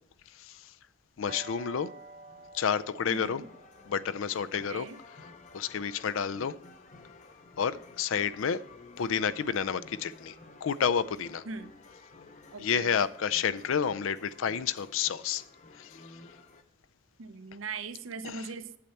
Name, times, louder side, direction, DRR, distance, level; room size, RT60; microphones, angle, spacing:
voice 1, 1.2-1.9 2.5-3.4 3.9-4.9 5.5-6.5 7.6-8.6 9.0-10.3 10.6-11.4 12.6-15.4 15.8-16.0 18.2-18.4, left 7 dB, 85° left, 0.4 m, -30 dB
sound 1, 1.3-7.1, right 3 dB, 40° right, 0.7 m, -51 dB
sound 2, 1.9-16.6, left 3 dB, 35° left, 0.6 m, -53 dB
voice 2, 3.1-3.5 4.5-5.0 11.5-11.8 12.5-13.0 17.2-18.8, right 4 dB, 85° right, 0.6 m, -40 dB
8.5 x 7.7 x 4.3 m
head